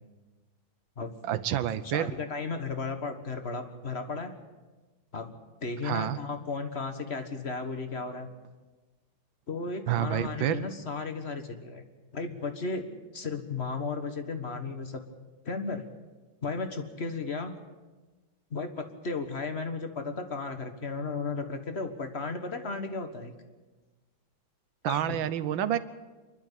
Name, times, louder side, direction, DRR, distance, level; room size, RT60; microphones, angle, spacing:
voice 1, 1.2-2.1 5.8-6.2 9.9-10.6 24.8-25.8, right 11 dB, 85° right, 14 dB, 1.6 m, -28 dB
voice 2, 1.8-4.3 5.1-5.3 5.6-8.3 9.5-11.8 12.1-12.9 13.1-15.0 15.4-15.9 16.4-17.6 18.5-23.3 24.8-25.2, left 4 dB, 35° left, 7 dB, 1.7 m, -34 dB
27.0 x 12.0 x 8.4 m, 1.2 s
omnidirectional pair, 2.1 m